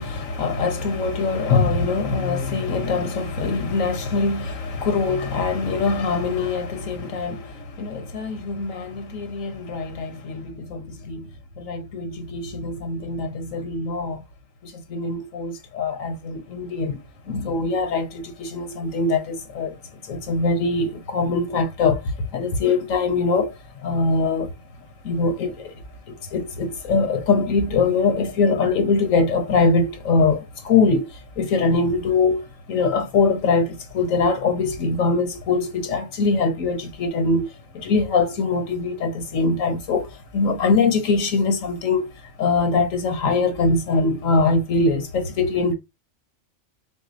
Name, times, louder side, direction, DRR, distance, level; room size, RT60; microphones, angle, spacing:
voice 1, 0.0-11.3 11.6-14.2 14.6-17.0 17.3-19.8 20.0-23.5 23.8-24.5 25.0-25.8 26.1-42.1 42.4-45.7, left 4 dB, 75° left, 1.3 m, -23 dB
6.5 x 2.3 x 2.6 m
omnidirectional pair, 1.4 m